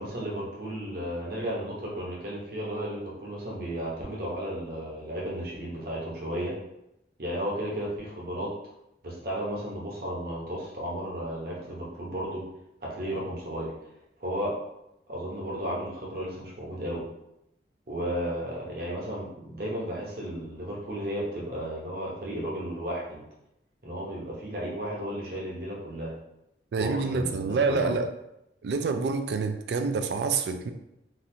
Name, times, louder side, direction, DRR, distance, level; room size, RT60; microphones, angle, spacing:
voice 1, 0.0-6.5 7.2-8.5 9.0-12.4 12.8-13.7 14.2-14.5 15.1-17.0 17.9-23.2 23.8-26.1 26.8-27.9, equal, 55° right, -4 dB, 0.9 m, -34 dB
voice 2, 26.7-28.1 28.6-30.7, right 4 dB, 70° right, 7 dB, 0.3 m, -27 dB
3.9 x 2.4 x 2.7 m, 0.83 s
head